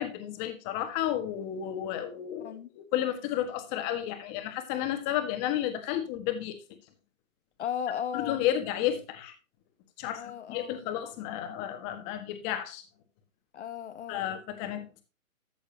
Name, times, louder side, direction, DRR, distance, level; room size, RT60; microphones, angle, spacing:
voice 1, 0.0-6.6 8.1-9.3 10.0-12.8 14.1-15.0, left 11 dB, 20° left, 1.4 m, -32 dB
voice 2, 2.4-2.7 7.6-8.4 10.1-10.8 13.5-14.2, left 8 dB, 55° left, 1.0 m, -36 dB
14.0 x 6.9 x 2.7 m
hypercardioid pair, 155°, 42 cm